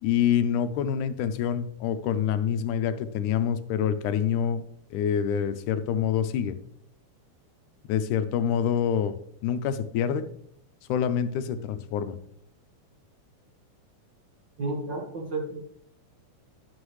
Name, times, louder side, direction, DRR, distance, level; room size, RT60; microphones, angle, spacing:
voice 1, 0.0-4.6 4.9-6.6 7.9-9.2 9.4-10.3 10.9-12.2, left 8 dB, 90° left, 11 dB, 2.2 m, -26 dB
voice 2, 14.6-15.6, right 2 dB, 45° right, 0 dB, 1.8 m, -31 dB
11.5 x 7.0 x 3.2 m, 0.66 s
omnidirectional pair, 3.5 m